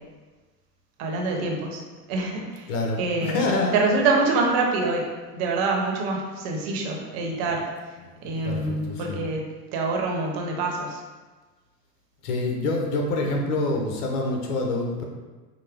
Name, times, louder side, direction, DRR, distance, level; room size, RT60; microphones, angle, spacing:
voice 1, 1.0-1.8 2.1-2.7 3.0-3.4 3.7-5.1 5.3-8.0 8.2-9.4 9.7-11.0, right 3 dB, 45° right, 0 dB, 0.9 m, -25 dB
voice 2, 2.7-3.7 8.0-9.3 12.2-15.0, left 2 dB, 65° left, 0 dB, 1.0 m, -27 dB
4.8 x 2.1 x 3.4 m, 1.3 s
hypercardioid pair, 110°, 49 cm